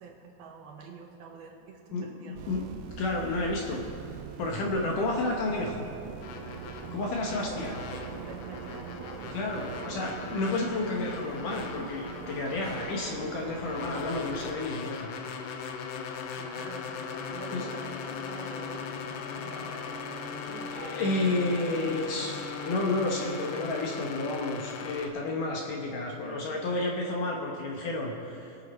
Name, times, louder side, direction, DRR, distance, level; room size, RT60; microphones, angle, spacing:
voice 1, 0.0-2.6 6.8-10.5 12.6-12.9 16.4-21.4, right 5 dB, 70° right, 1 dB, 2.9 m, -46 dB
voice 2, 1.9-2.7 3.0-3.9 4.4-5.9 6.9-7.8 9.3-15.1 17.5-17.7 20.8-28.7, left 2 dB, 65° left, 0 dB, 2.3 m, -31 dB
sound 1, 2.4-14.6, right 8 dB, 85° right, 2.8 m, -43 dB
sound 2, 6.2-25.1, left 5 dB, 85° left, 3.1 m, -39 dB
23.5 x 8.4 x 4.3 m, 3.0 s
omnidirectional pair, 4.8 m